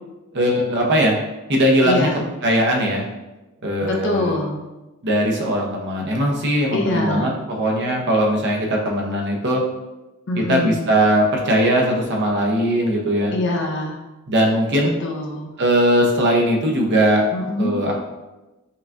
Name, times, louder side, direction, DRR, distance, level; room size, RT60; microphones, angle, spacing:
voice 1, 0.3-1.2 1.5-2.1 2.4-3.0 3.6-4.4 5.0-9.6 10.4-13.3 14.3-15.0 15.6-17.2 17.6-17.9, equal, 50° right, 0 dB, 0.7 m, -19 dB
voice 2, 1.8-2.2 3.8-4.6 6.7-7.3 10.3-10.8 13.3-14.0 15.0-15.5 17.3-17.8, left 1 dB, 55° left, 0 dB, 0.6 m, -24 dB
5.7 x 2.3 x 2.5 m, 1.0 s
head